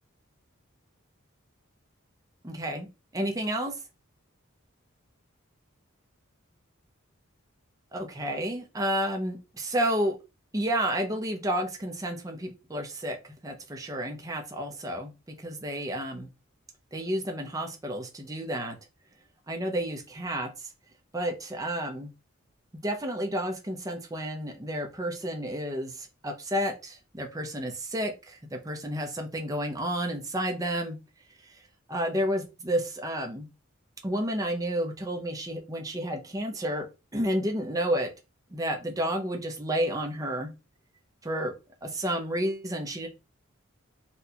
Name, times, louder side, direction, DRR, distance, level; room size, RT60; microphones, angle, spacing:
voice 1, 2.4-2.9 3.1-3.7 7.9-10.2 10.5-15.1 15.4-16.3 16.9-18.8 19.5-20.7 21.1-22.1 22.7-31.0 31.9-33.5 34.0-36.9 37.1-38.1 38.5-40.5 41.2-41.5 41.8-43.1, equal, 15° right, 3 dB, 0.6 m, -31 dB
4.1 x 2.2 x 2.7 m, 0.28 s
head